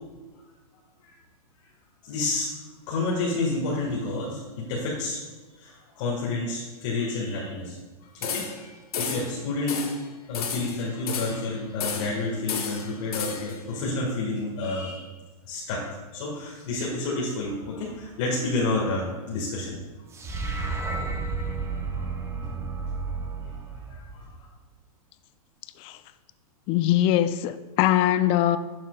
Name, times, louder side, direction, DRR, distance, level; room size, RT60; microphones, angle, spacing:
voice 1, 2.0-2.5 2.9-5.2 5.6-7.8 8.1-8.6 9.0-9.8 10.3-15.1 15.5-15.8 16.1-19.8 21.3-21.4 22.0-22.1 23.9-24.3, left 2 dB, 55° left, 1.9 m, -29 dB
sound 1, 8.2-8.7 8.9-9.3 9.7-10.0 10.3-11.4 11.8-12.2 12.5-13.6, left 6 dB, 75° left, 1.4 m, -32 dB
sound 2, 20.1-24.5, right 4 dB, 15° right, 0.8 m, -32 dB
voice 2, 26.7-28.6, left 12 dB, 30° left, 0.4 m, -22 dB
11.5 x 7.1 x 2.4 m
hypercardioid pair, 130°, 19 cm